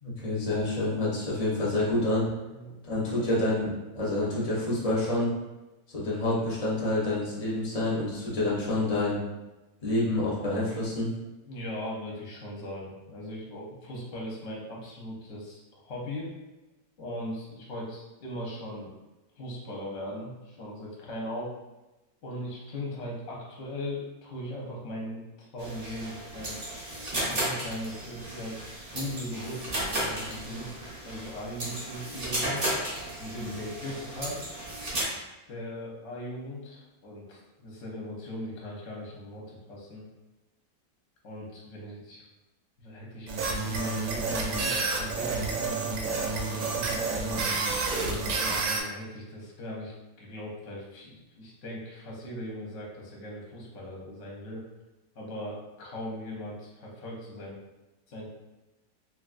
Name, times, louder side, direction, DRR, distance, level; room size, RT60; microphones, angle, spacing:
voice 1, 0.0-2.3 2.9-3.7 3.9-5.3 5.9-9.2 9.8-11.1, left 2 dB, 35° left, -5 dB, 0.6 m, -28 dB
voice 2, 2.5-3.3 11.5-16.3 17.0-18.9 19.4-21.5 22.2-26.6 27.1-28.6 28.9-30.7 31.0-32.7 33.2-34.4 35.5-40.0 41.2-42.2 42.8-43.3 43.6-47.5 48.4-54.7 55.1-57.6 58.1-58.3, equal, 55° left, -3 dB, 0.9 m, -39 dB
sound 1, 25.6-35.0, right 1 dB, 55° right, 0.4 m, -34 dB
sound 2, 43.3-48.8, right 3 dB, 75° right, 1.0 m, -29 dB
3.1 x 2.4 x 2.4 m, 1.0 s
omnidirectional pair, 1.7 m